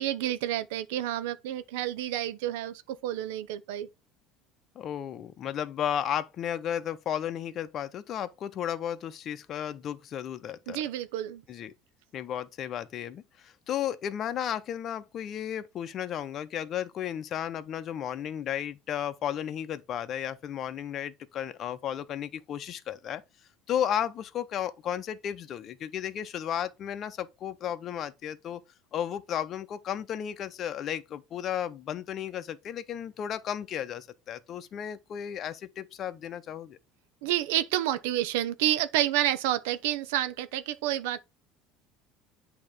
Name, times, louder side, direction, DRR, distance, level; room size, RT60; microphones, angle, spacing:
voice 1, 0.0-3.9 10.7-11.4 37.2-41.2, right 13 dB, 90° right, 0.5 m, -29 dB
voice 2, 4.7-10.8 11.5-11.7 12.1-23.2 23.7-28.6 28.9-36.8, left 9 dB, 40° left, 0.7 m, -34 dB
8.6 x 2.9 x 4.9 m
cardioid pair, 125°, 0 cm